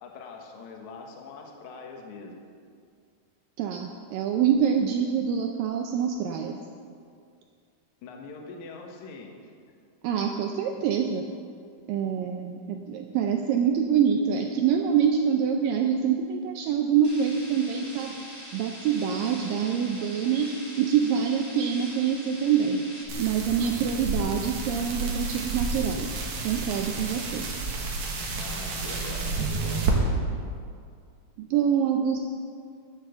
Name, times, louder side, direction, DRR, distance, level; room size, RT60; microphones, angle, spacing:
voice 1, 0.0-2.4 8.0-9.5 28.4-29.9, left 4 dB, 60° left, 2 dB, 2.1 m, -43 dB
voice 2, 3.6-6.6 10.0-11.2 11.9-18.1 18.5-20.5 20.8-22.8 23.2-26.1 26.4-27.5 31.4-32.2, right 7 dB, 80° right, 4 dB, 2.0 m, -25 dB
sound 1, 17.0-23.0, equal, 25° left, 0.5 m, -43 dB
sound 2, 23.1-29.9, right 3 dB, 60° right, 2.3 m, -30 dB
11.5 x 7.4 x 6.8 m, 2.3 s
omnidirectional pair, 4.5 m